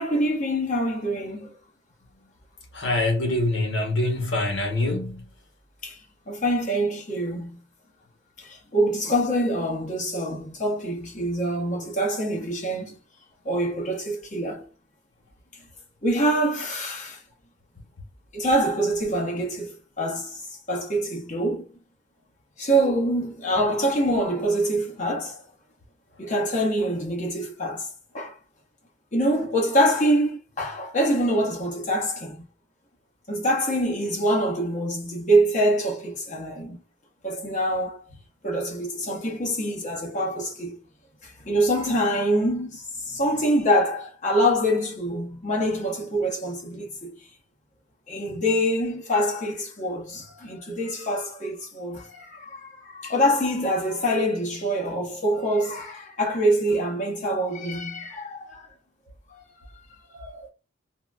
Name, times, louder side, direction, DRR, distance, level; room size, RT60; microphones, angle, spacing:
voice 1, 0.0-1.5 5.8-6.0 6.3-7.6 8.4-13.0 13.4-14.7 16.0-17.2 18.3-20.4 20.7-21.7 22.6-25.4 26.2-27.9 28.1-28.3 29.1-32.4 33.3-36.8 37.2-38.0 38.4-40.8 41.2-47.2 48.1-58.7 59.3-59.4 59.7-59.8 60.1-60.5, equal, 40° left, 1.1 m, -25 dB
voice 2, 2.7-5.2, left 2 dB, 70° left, 1.2 m, -24 dB
4.0 x 2.1 x 2.5 m
head